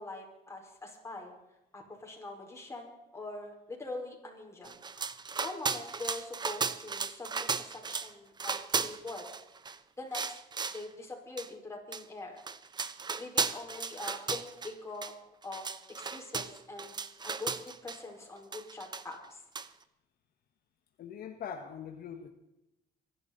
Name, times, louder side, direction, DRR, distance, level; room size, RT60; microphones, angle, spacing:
voice 1, 0.0-1.3 1.7-9.2 10.0-10.4 10.7-12.4 13.2-15.1 15.4-15.6 16.0-16.9 17.2-19.4, left 2 dB, 15° left, 0 dB, 5.2 m, -43 dB
sound 1, 4.7-8.1 8.4-9.8 10.1-10.9 11.4-11.5 11.9-12.0 12.4-14.7 15.0-15.1 15.4-18.0 18.5-19.3 19.6-19.7, right 5 dB, 25° right, 0.8 m, -35 dB
voice 2, 21.0-22.3, left 7 dB, 60° left, 5 dB, 1.5 m, -42 dB
25.5 x 11.5 x 4.2 m, 0.91 s
cardioid pair, 110°, 17 cm